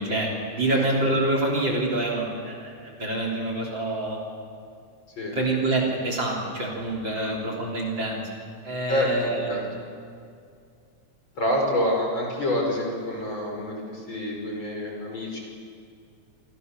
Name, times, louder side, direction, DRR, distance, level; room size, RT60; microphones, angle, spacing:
voice 1, 0.0-4.2 5.3-8.2 8.6-9.7, right 2 dB, 35° right, 0 dB, 4.2 m, -26 dB
voice 2, 8.9-9.6 11.4-15.4, left 1 dB, 40° left, 0 dB, 6.0 m, -27 dB
29.0 x 25.5 x 6.8 m, 2.3 s
omnidirectional pair, 3.4 m